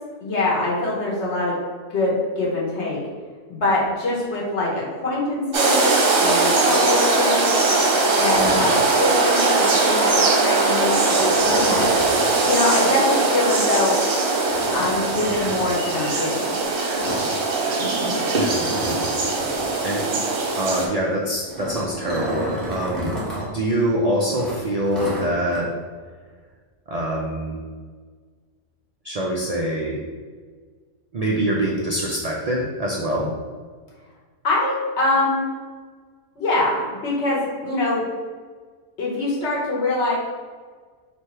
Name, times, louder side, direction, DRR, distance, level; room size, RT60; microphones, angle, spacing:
voice 1, 0.2-1.6 1.9-3.0 3.6-7.5 8.2-11.9 12.4-14.0 14.7-16.6 34.4-35.4 36.4-38.0 39.0-40.1, left 2 dB, 60° left, -5 dB, 1.4 m, -24 dB
sound 1, 5.5-20.9, right 3 dB, 50° right, 0.8 m, -20 dB
sound 2, 8.3-9.3 11.3-12.2 14.4-15.7 16.9-17.3 17.5-17.7 18.0-18.1 18.5-19.6 21.2-23.5 23.8-23.9 24.4-25.6, right 1 dB, ahead, 1.2 m, -31 dB
voice 2, 18.4-19.0 19.8-20.2 20.5-23.2 23.5-25.7 26.9-27.6 29.0-30.0 31.1-33.3, right 1 dB, 85° right, -3 dB, 0.3 m, -24 dB
3.3 x 3.0 x 4.4 m, 1.5 s
omnidirectional pair, 1.4 m